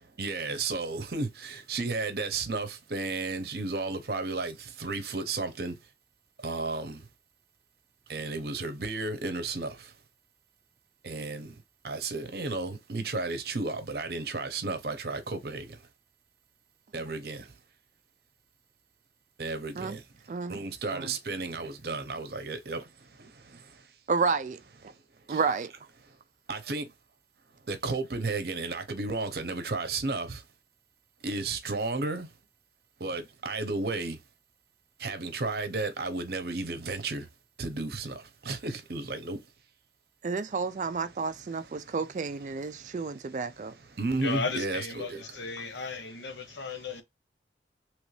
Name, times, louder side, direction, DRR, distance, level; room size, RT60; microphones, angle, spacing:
voice 1, 0.2-4.5 4.8-5.7 6.4-6.9 8.1-9.7 11.1-11.5 11.8-15.6 16.9-17.4 19.4-19.7 20.5-22.8 26.5-26.8 27.7-30.3 31.2-32.3 33.0-34.2 35.0-37.2 37.6-38.1 38.5-39.4 44.0-45.2, right 3 dB, 60° right, 0.7 m, -33 dB
voice 2, 20.3-20.6 20.9-21.1 24.1-24.6 25.3-25.7 40.2-43.7, right 4 dB, 40° right, 0.3 m, -30 dB
voice 3, 44.2-47.0, left 4 dB, 85° left, 0.8 m, -35 dB
3.1 x 2.6 x 3.1 m
head